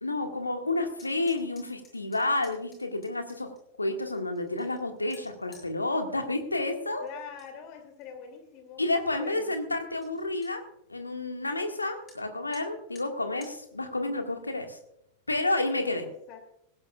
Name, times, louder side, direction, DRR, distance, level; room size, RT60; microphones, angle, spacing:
voice 1, 0.0-3.5 3.8-7.0 8.8-10.6 10.9-14.8 15.3-16.0, left 2 dB, 80° left, 5 dB, 1.8 m, -30 dB
sound 1, 0.9-3.6 4.1-5.7 7.1-7.5 7.9-8.4 8.9-9.0 9.3-9.4 9.7-9.8 10.0-10.5 12.1-12.2 12.5-12.6 13.0-13.1 13.4-13.5, left 3 dB, 20° left, 6.8 m, -55 dB
voice 2, 7.0-8.8 9.2-9.6 15.8-16.5, left 7 dB, 40° left, 5 dB, 2.6 m, -44 dB
19.5 x 16.0 x 2.4 m, 0.76 s
figure-of-eight pair, 90°, 0 cm